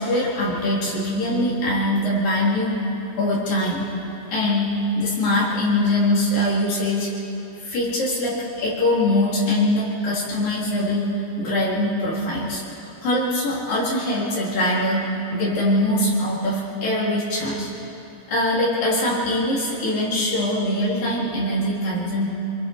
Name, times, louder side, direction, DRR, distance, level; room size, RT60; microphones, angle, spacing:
voice 1, 0.0-2.9 3.2-3.9 4.3-7.1 7.6-11.1 11.4-12.6 13.0-15.0 15.3-17.7 18.3-22.3, left 1 dB, 75° left, -6 dB, 5.7 m, -22 dB
28.0 x 21.0 x 4.8 m, 2.9 s
omnidirectional pair, 4.0 m